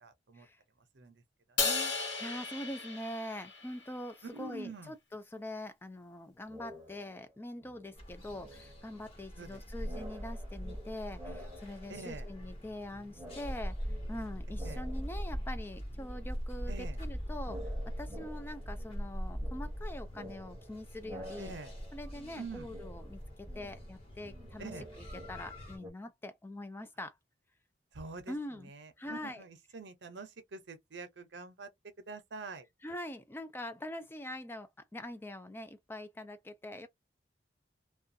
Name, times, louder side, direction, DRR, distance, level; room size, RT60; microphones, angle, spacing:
voice 1, 0.0-0.5 0.9-1.1 1.6-1.9 4.3-4.9 9.4-9.6 11.9-12.3 14.6-14.8 16.7-17.0 21.4-21.7 22.4-22.7 24.6-24.9 27.9-28.3 28.7-31.7 32.1-32.7, right 3 dB, 75° right, 0.6 m, -45 dB
Crash cymbal, 1.6-4.0, left 4 dB, 85° left, 1.1 m, -35 dB
voice 2, 2.2-17.6 18.0-21.5 21.9-27.2 28.3-28.7 29.0-29.4 32.8-36.9, left 1 dB, 10° left, 0.3 m, -44 dB
sound 1, 6.5-7.3 7.6-9.5 9.8-12.8 13.1-15.7 15.9-25.9, equal, 15° right, 0.8 m, -51 dB
sound 2, 7.9-25.8, equal, 30° left, 1.2 m, -41 dB
2.4 x 2.2 x 2.6 m
head